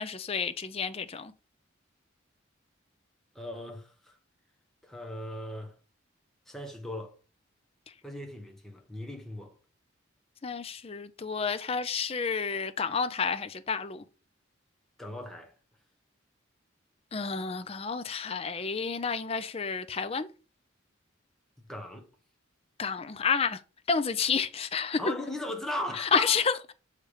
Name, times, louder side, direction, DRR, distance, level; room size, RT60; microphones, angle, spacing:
voice 1, 0.0-1.3 10.4-14.0 17.1-20.3 22.8-23.6 23.9-25.0 26.0-26.5, left 5 dB, 30° left, 0.5 m, -30 dB
voice 2, 3.3-4.2 4.8-5.8 6.5-7.2 8.0-9.5 15.0-15.5 21.7-22.1 25.0-26.4, left 1 dB, ahead, 1.0 m, -38 dB
6.9 x 3.3 x 4.9 m
head